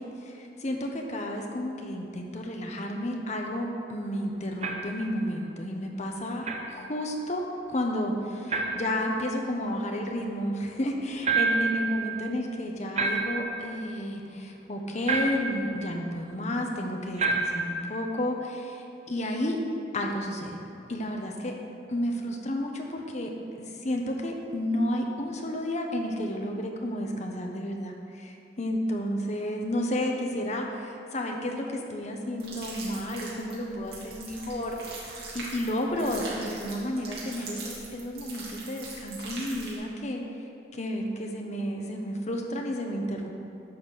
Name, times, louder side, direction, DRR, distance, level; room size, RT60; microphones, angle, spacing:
voice 1, 0.0-7.4 7.7-19.6 19.9-20.6 20.9-21.5 21.9-23.3 23.6-40.2 40.7-43.3, left 1 dB, 40° left, 2 dB, 1.0 m, -31 dB
sound 1, 4.6-5.0 6.4-6.7 8.5-8.9 11.2-11.8 13.0-13.6 15.1-15.6 17.2-17.7, right 4 dB, 40° right, 0.8 m, -27 dB
sound 2, 32.4-39.8, right 3 dB, 65° right, 2.5 m, -41 dB
11.5 x 4.3 x 6.6 m, 2.6 s
head